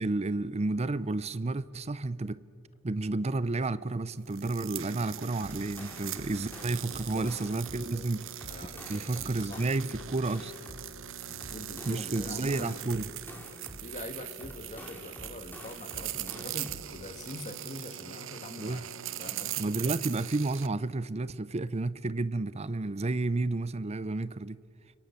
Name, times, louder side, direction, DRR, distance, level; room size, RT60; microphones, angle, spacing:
voice 1, 0.0-2.4 2.8-8.3 8.9-10.5 11.8-13.0 18.6-18.8 19.6-24.6, right 2 dB, 30° right, 0.6 m, -31 dB
sound 1, 4.3-20.7, right 11 dB, 65° right, 0.9 m, -41 dB
sound 2, 5.2-7.9 8.2-10.9 11.2-13.9 14.2-16.9, left 1 dB, 10° left, 3.7 m, -48 dB
voice 2, 6.8-7.3 7.6-8.1 8.4-9.7 11.2-12.9 13.8-18.9 19.2-19.7, left 2 dB, 35° left, 1.6 m, -44 dB
29.5 x 26.0 x 7.1 m
head